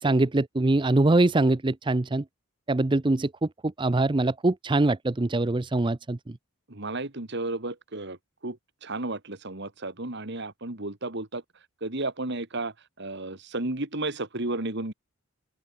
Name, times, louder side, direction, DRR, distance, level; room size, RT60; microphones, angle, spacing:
voice 1, 0.0-2.2 2.7-6.4, right 2 dB, 20° right, 0.5 m, -23 dB
voice 2, 6.7-8.2 8.4-11.4 11.8-14.9, right 2 dB, 55° right, 2.2 m, -33 dB
open air
head